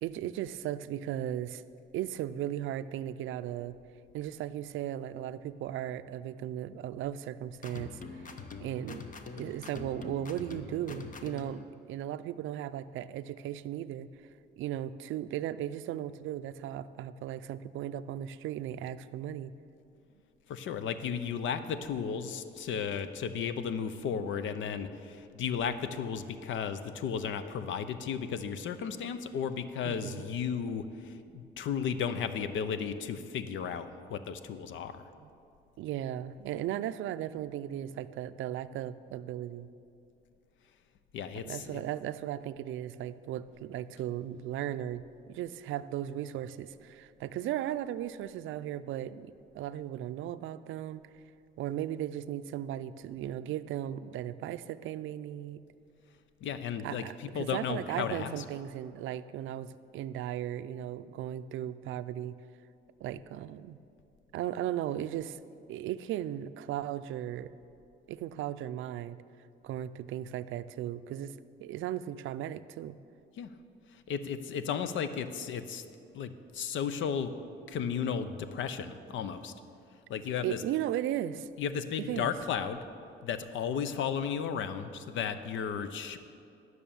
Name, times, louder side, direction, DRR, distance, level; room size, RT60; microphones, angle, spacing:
voice 1, 0.0-1.6 1.9-3.8 4.1-8.3 8.6-9.0 9.4-14.1 14.6-19.5 29.8-30.3 35.2-35.3 35.8-39.7 41.3-51.0 51.6-55.6 56.8-62.4 63.0-63.8 64.3-65.4 65.7-67.6 68.1-69.2 69.6-73.0 80.4-81.5 82.0-82.3, right 12 dB, 80° right, 14 dB, 0.4 m, -36 dB
sound 1, 7.6-11.6, left 4 dB, 40° left, 0.9 m, -44 dB
voice 2, 20.5-35.0 41.1-41.8 56.4-58.4 73.4-73.5 74.1-75.8 76.1-77.3 77.7-79.5 80.1-80.6 81.6-82.8 83.2-86.2, left 7 dB, 75° left, 11 dB, 0.7 m, -34 dB
11.0 x 6.4 x 7.0 m, 2.5 s
cardioid pair, 90°, 20 cm